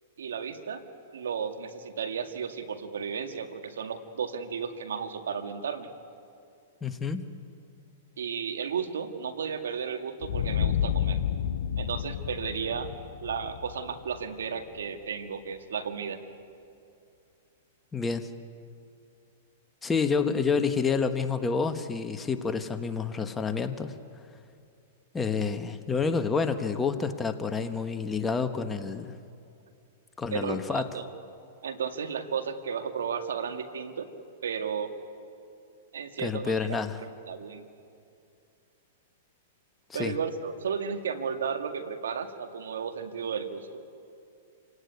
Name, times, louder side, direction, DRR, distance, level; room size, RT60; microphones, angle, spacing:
voice 1, 0.2-0.8 1.1-5.9 8.2-11.2 11.8-12.9 13.2-16.2 30.3-31.0 31.6-34.1 34.4-34.9 35.9-36.8 37.3-37.6 39.9-43.8, right 6 dB, 85° right, 7 dB, 2.0 m, -34 dB
voice 2, 6.8-7.3 17.9-18.3 19.8-23.9 25.1-29.2 30.2-30.9 36.2-37.0 39.9-40.1, left 5 dB, 15° left, 7 dB, 1.3 m, -28 dB
sound 1, 10.2-14.8, left 9 dB, 70° left, 1.2 m, -30 dB
28.0 x 17.5 x 9.6 m, 2.6 s
hypercardioid pair, 125°, 0 cm